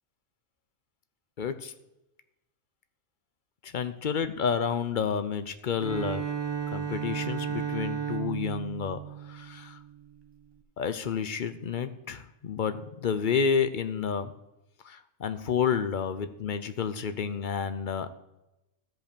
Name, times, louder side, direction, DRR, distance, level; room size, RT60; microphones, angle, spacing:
voice 1, 1.4-1.7 3.6-6.3 6.7-9.0 9.2-9.8 10.8-14.3 14.8-18.1, left 6 dB, 55° left, 11 dB, 0.6 m, -30 dB
Bowed string instrument, 5.7-10.1, right 7 dB, 20° right, 0.9 m, -34 dB
13.5 x 5.3 x 6.8 m, 0.95 s
omnidirectional pair, 1.4 m